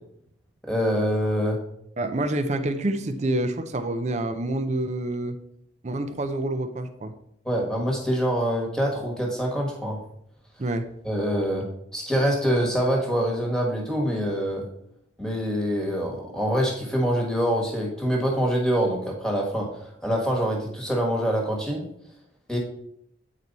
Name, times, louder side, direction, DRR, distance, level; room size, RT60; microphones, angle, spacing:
voice 1, 0.6-1.6 7.4-10.0 11.0-11.7 11.9-14.7 15.2-21.8 22.5-22.6, equal, 5° left, -1 dB, 1.4 m, -25 dB
voice 2, 2.0-5.4 5.8-7.1 10.6-10.9, right 1 dB, 35° right, 8 dB, 0.5 m, -27 dB
8.4 x 4.6 x 4.0 m, 0.74 s
head